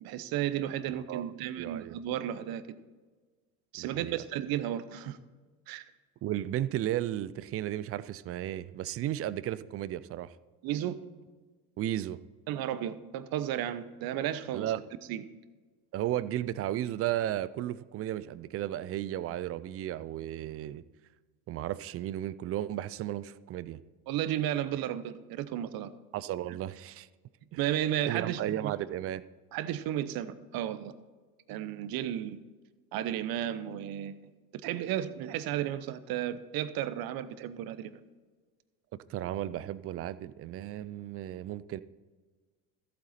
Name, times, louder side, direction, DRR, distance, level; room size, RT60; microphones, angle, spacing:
voice 1, 0.0-2.6 3.7-5.2 5.7-5.8 10.6-11.0 12.5-14.7 15.1-15.2 24.1-25.9 27.6-28.7 29.5-30.9 31.5-32.4 32.9-38.0, right 11 dB, 50° right, 14 dB, 0.9 m, -33 dB
voice 2, 1.6-1.9 3.8-4.2 6.2-10.3 11.8-12.2 14.5-14.8 15.9-20.8 21.5-23.8 26.1-27.1 28.1-29.2 39.1-41.8, right 12 dB, 35° right, 17 dB, 0.4 m, -34 dB
14.0 x 8.4 x 4.2 m, 1.4 s
hypercardioid pair, 80°, 46 cm